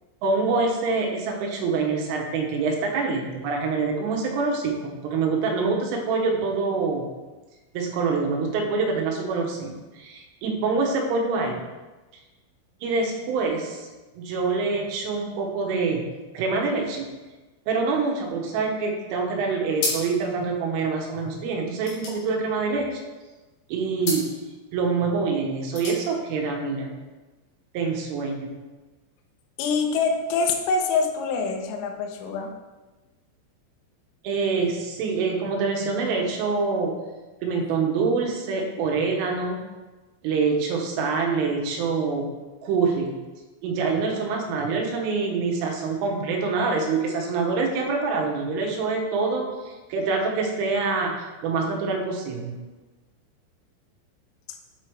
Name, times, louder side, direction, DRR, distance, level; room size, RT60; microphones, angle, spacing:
voice 1, 0.2-7.1 7.8-11.6 12.8-13.9 14.2-16.1 16.4-17.1 17.7-23.1 23.7-24.3 24.7-26.9 27.8-28.5 34.3-37.0 37.4-39.7 40.2-42.3 42.6-43.1 43.6-51.2 51.4-52.6, right 4 dB, 85° right, 1 dB, 3.5 m, -25 dB
sound 1, 19.7-20.3 20.6-20.7 21.0-23.1 24.0-24.3 25.5-26.0, left 2 dB, 55° left, 3.4 m, -32 dB
voice 2, 29.6-32.5, left 4 dB, 90° left, 3 dB, 3.4 m, -25 dB
8.6 x 5.0 x 4.6 m, 1.2 s
omnidirectional pair, 5.7 m